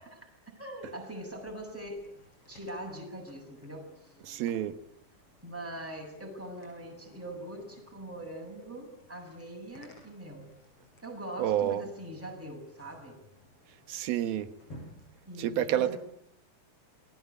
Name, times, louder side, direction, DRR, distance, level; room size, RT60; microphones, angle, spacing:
voice 1, 0.0-2.1 2.5-4.1 5.4-10.5 11.0-13.2 15.2-16.0, right 1 dB, 5° right, 1 dB, 6.7 m, -42 dB
sound 1, 1.1-15.3, left 1 dB, 35° left, 7.1 m, -57 dB
voice 2, 4.2-4.8 11.4-11.9 13.9-14.5 15.4-16.0, right 11 dB, 75° right, 11 dB, 3.0 m, -29 dB
28.0 x 21.0 x 8.3 m, 0.74 s
omnidirectional pair, 4.5 m